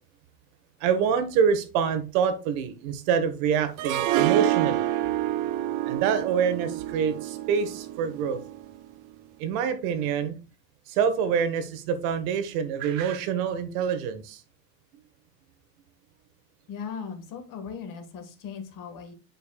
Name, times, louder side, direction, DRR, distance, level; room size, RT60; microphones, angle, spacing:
voice 1, 0.8-4.9 5.9-8.4 9.4-10.3 10.9-14.4, right 7 dB, 60° right, 10 dB, 1.4 m, -26 dB
Harp, 3.8-8.8, right 14 dB, 40° right, 0.6 m, -27 dB
voice 2, 16.7-19.1, left 6 dB, 40° left, 6 dB, 1.6 m, -38 dB
9.3 x 5.3 x 2.3 m, 0.34 s
supercardioid pair, 125°, 49 cm